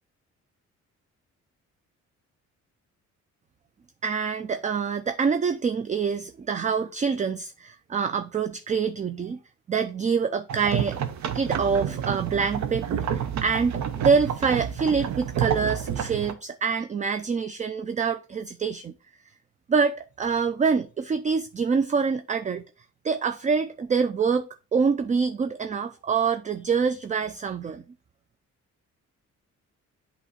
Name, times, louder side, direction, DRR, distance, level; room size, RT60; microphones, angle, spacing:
voice 1, 4.0-9.4 9.7-11.0 11.3-18.9 19.7-22.6 23.0-27.8, right 5 dB, 25° right, 0.4 m, -26 dB
sound 1, 10.5-16.3, right 9 dB, 65° right, 0.8 m, -29 dB
8.2 x 3.0 x 4.1 m
cardioid pair, 90°, 30 cm